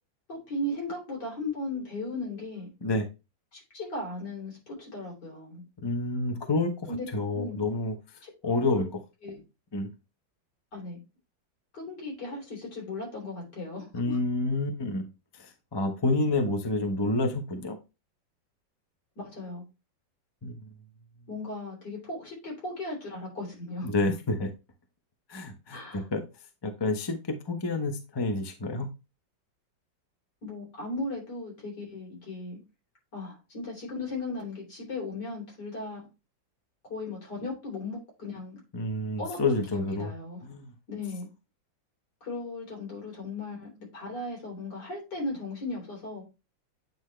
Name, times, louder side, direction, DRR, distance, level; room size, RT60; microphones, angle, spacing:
voice 1, 0.3-2.7 3.5-5.6 6.9-7.1 7.3-7.6 8.2-8.8 9.2-9.4 10.7-11.0 11.7-14.2 19.2-19.6 21.3-23.9 25.7-26.1 30.4-32.6 33.1-36.0 36.8-38.6 39.2-40.4 40.9-41.3 42.2-46.2, left 2 dB, 60° left, -2 dB, 4.0 m, -37 dB
voice 2, 5.8-6.7 7.1-8.0 8.4-8.9 9.7-9.9 13.9-15.1 15.4-17.8 20.4-20.7 23.8-24.5 25.3-26.2 26.6-28.9 38.7-40.1 40.4-40.7, left 2 dB, 30° left, 5 dB, 0.4 m, -28 dB
8.7 x 4.0 x 3.2 m, 0.27 s
omnidirectional pair, 2.1 m